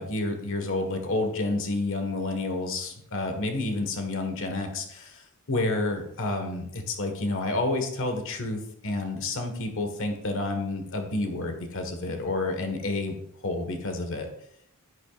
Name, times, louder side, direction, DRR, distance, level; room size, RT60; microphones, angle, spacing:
voice 1, 0.0-5.2 5.5-13.1 13.4-14.3, left 2 dB, 65° left, 5 dB, 1.5 m, -29 dB
11.0 x 9.9 x 2.4 m, 0.74 s
head